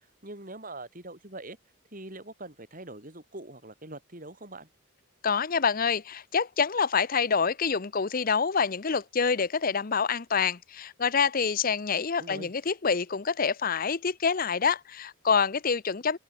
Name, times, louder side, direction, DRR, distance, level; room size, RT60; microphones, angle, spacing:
voice 1, 0.0-1.6 1.9-4.7 12.2-12.5, right 2 dB, 40° right, 3.8 m, -43 dB
voice 2, 5.2-16.2, left 5 dB, 40° left, 0.6 m, -26 dB
head